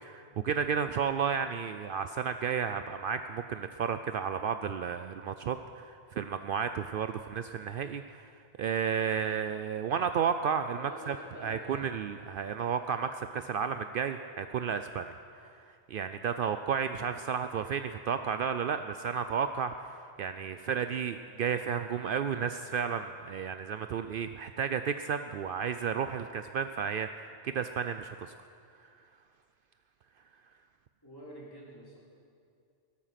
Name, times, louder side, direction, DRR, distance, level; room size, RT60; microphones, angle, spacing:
voice 1, 0.0-8.3 8.6-11.1 11.4-15.1 15.4-15.6 15.9-27.1 27.4-28.3, right 7 dB, 65° right, 9 dB, 0.7 m, -32 dB
voice 2, 10.7-11.9 31.0-32.0, equal, 20° left, -5 dB, 3.5 m, -48 dB
17.5 x 13.0 x 5.8 m, 2.3 s
omnidirectional pair, 1.1 m